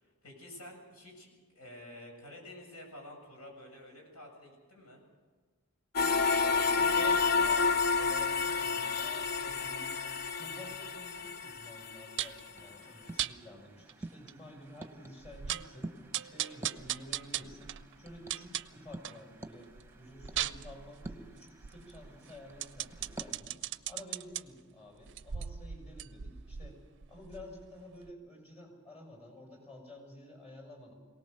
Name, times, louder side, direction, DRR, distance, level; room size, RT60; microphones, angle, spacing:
voice 1, 0.0-5.0, left 1 dB, 70° left, 1 dB, 7.5 m, -50 dB
sound 1, 6.0-12.2, left 4 dB, 45° left, 0.7 m, -29 dB
voice 2, 6.4-7.7 8.0-10.0 10.4-15.9 16.2-23.6 23.9-26.8 27.1-30.9, left 1 dB, 30° left, 3 dB, 6.2 m, -51 dB
sound 2, 12.2-12.5 13.2-13.3 13.9-14.0 14.3-14.4 14.8-14.9 15.2-15.7 16.1-19.2 19.6-24.4 25.0-27.7 28.0-28.1, right 11 dB, 55° right, 0.5 m, -38 dB
sound 3, 12.5-23.4, right 2 dB, 10° right, 0.9 m, -50 dB
23.5 x 18.0 x 6.7 m, 1.4 s
head